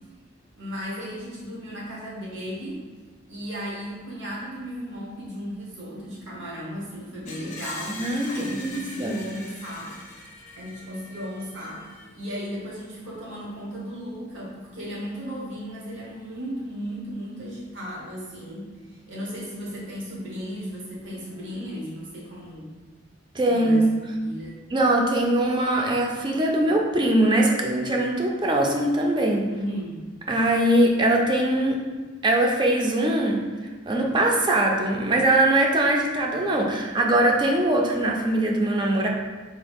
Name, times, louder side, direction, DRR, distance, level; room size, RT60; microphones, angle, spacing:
voice 1, 0.5-2.8 3.3-10.0 10.6-22.7 23.5-23.8 24.2-24.6 29.5-30.0, equal, 85° right, -5 dB, 1.0 m, -35 dB
Screech, 7.3-12.2, left 2 dB, 40° left, 0.5 m, -41 dB
voice 2, 7.9-9.2 23.3-23.9 24.7-29.5 30.3-31.8 32.2-33.4 33.9-39.1, right 1 dB, 25° right, 0 dB, 0.4 m, -22 dB
3.7 x 2.3 x 3.5 m, 1.3 s
head